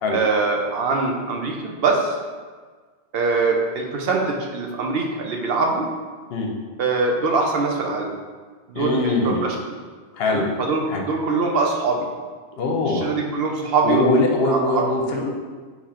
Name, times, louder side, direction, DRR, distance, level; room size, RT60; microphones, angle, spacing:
voice 1, 0.1-2.2 3.1-5.9 6.8-8.1 8.7-9.7 10.2-12.1 12.9-14.0 14.5-14.8, right 4 dB, 65° right, 1 dB, 0.8 m, -23 dB
voice 2, 8.7-9.4 10.1-10.5 10.9-11.0 12.6-13.2 13.8-15.3, left 2 dB, 65° left, 2 dB, 0.8 m, -22 dB
4.0 x 2.9 x 4.2 m, 1.5 s
omnidirectional pair, 1.2 m